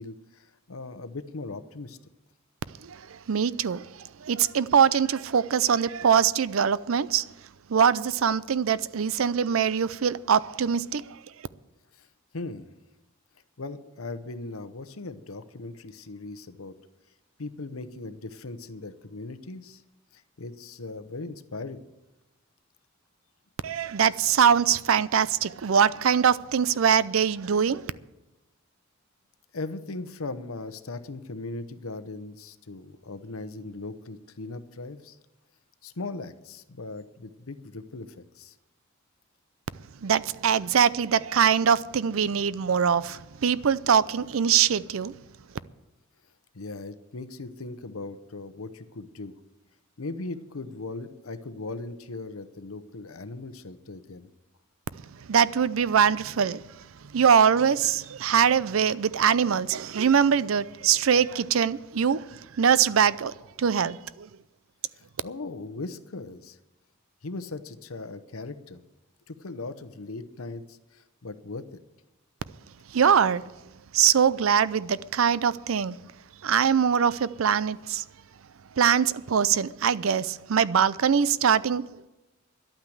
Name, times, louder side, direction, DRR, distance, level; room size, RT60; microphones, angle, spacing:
voice 1, 0.0-2.0 11.9-12.1 12.3-12.8 13.6-16.7 17.4-19.8 20.1-21.8 29.5-35.2 35.8-38.5 46.5-49.4 50.0-54.3 64.9-66.6 67.2-68.8 69.3-71.8, left 3 dB, 90° left, 0.9 m, -38 dB
voice 2, 2.8-7.2 7.7-11.0 23.6-27.9 40.0-45.1 55.3-56.6 57.1-64.3 72.9-73.5 73.9-76.0 76.4-78.0 78.8-81.8, right 7 dB, 70° right, 0.5 m, -23 dB
12.0 x 9.0 x 7.8 m
head